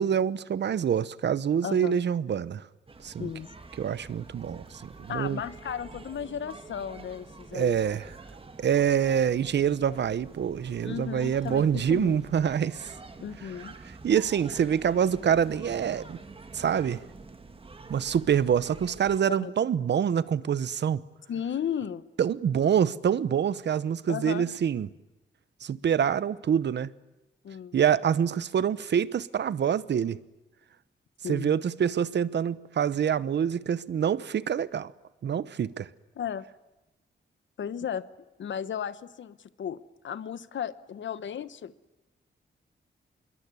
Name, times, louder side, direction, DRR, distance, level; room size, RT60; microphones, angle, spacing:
voice 1, 0.0-2.6 3.0-3.3 3.8-4.6 5.0-5.4 7.5-8.1 8.6-12.9 14.0-16.2 16.5-17.0 17.9-21.0 22.2-24.9 25.6-26.9 27.7-30.2 31.3-34.9 35.2-35.9, right 8 dB, 65° right, 0.9 m, -26 dB
voice 2, 1.6-2.0 3.2-3.5 5.1-7.8 10.8-12.2 13.2-13.7 19.3-19.5 21.3-22.0 24.1-24.5 27.4-27.8 31.2-31.5 36.1-36.4 37.6-38.0 38.4-39.8 40.0-41.7, left 8 dB, 75° left, 1.2 m, -34 dB
sound 1, 2.9-19.2, right 3 dB, 30° right, 1.9 m, -47 dB
26.0 x 22.5 x 9.7 m
wide cardioid pair, 135°, 19 cm